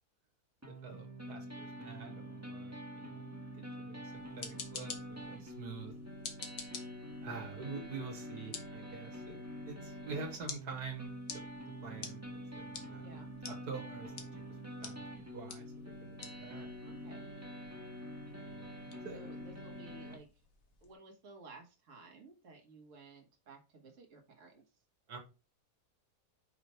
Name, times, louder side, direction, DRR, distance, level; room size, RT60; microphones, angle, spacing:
sound 1, 0.6-20.2, equal, 10° right, 1.4 m, -46 dB
voice 1, 0.7-3.2 3.5-5.9 7.2-9.4 9.7-11.1 11.8-13.1 13.5-14.1 14.8-15.1 15.3-16.7 18.4-18.7 19.0-19.3 25.1-25.2, right 4 dB, 75° right, 3 dB, 2.1 m, -46 dB
sound 2, 4.1-20.9, left 5 dB, 60° left, 1.5 m, -51 dB
voice 2, 13.0-13.3 16.8-17.3 18.9-20.3 20.8-24.6, right 3 dB, 50° right, 2 dB, 1.8 m, -55 dB
5.8 x 4.9 x 4.3 m, 0.29 s
omnidirectional pair, 1.7 m